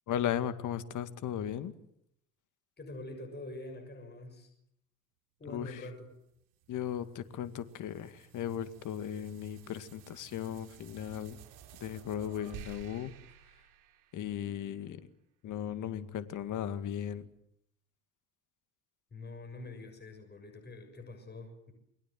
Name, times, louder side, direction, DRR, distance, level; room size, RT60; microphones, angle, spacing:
voice 1, 0.1-1.7 5.5-5.8 6.7-11.4 11.8-13.1 14.1-15.1 15.4-17.3, left 10 dB, 45° left, 12 dB, 2.2 m, -36 dB
voice 2, 2.8-4.5 5.4-6.1 19.1-21.7, left 2 dB, 25° left, 5 dB, 6.9 m, -45 dB
sound 1, 6.1-14.7, right 11 dB, 60° right, 4.2 m, -54 dB
28.5 x 22.5 x 7.6 m, 0.77 s
figure-of-eight pair, 60°, 41 cm